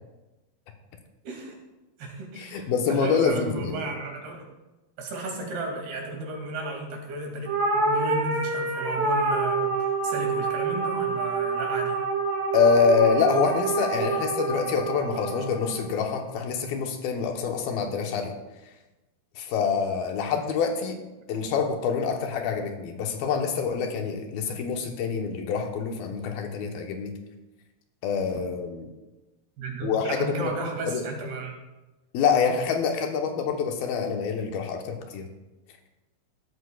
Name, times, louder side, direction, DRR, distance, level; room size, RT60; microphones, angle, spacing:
voice 1, 1.2-1.6 2.0-2.6 2.9-4.4 5.0-9.7 10.0-12.0 29.6-31.6, right 2 dB, 80° right, 1 dB, 4.4 m, -34 dB
voice 2, 2.4-3.9 12.5-18.3 19.4-21.0 21.3-27.1 28.0-28.9 29.8-30.5 30.9-31.0 32.1-35.3, left 6 dB, 75° left, 3 dB, 2.9 m, -26 dB
sound 1, 7.5-16.0, right 3 dB, 60° right, 3.9 m, -27 dB
16.5 x 13.0 x 2.4 m, 1.1 s
omnidirectional pair, 4.4 m